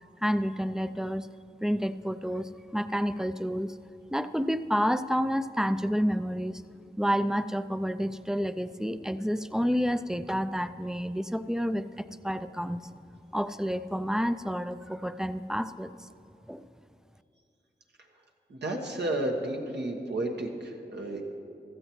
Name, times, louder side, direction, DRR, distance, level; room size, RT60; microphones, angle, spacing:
voice 1, 0.2-1.3 1.6-3.7 4.1-6.6 7.0-12.8 13.3-16.1 16.5-16.6, equal, 5° right, 12 dB, 0.4 m, -29 dB
voice 2, 18.5-21.2, right 1 dB, 75° right, 1 dB, 1.4 m, -32 dB
15.5 x 13.0 x 3.1 m, 2.6 s
cardioid pair, 45°, 18 cm